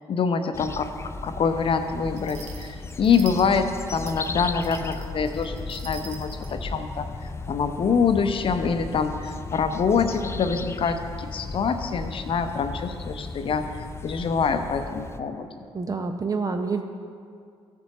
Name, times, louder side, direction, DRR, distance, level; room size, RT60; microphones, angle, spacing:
voice 1, 0.1-0.9 1.2-7.1 7.5-15.5, left 5 dB, 40° left, 9 dB, 0.7 m, -25 dB
sound 1, 0.5-15.2, left 3 dB, 20° left, 0.4 m, -36 dB
sound 2, 2.2-6.6, right 6 dB, 55° right, 1.1 m, -44 dB
voice 2, 15.7-16.8, right 4 dB, 25° right, 5 dB, 0.6 m, -27 dB
15.5 x 7.0 x 3.0 m, 2.3 s
figure-of-eight pair, 45°, 14 cm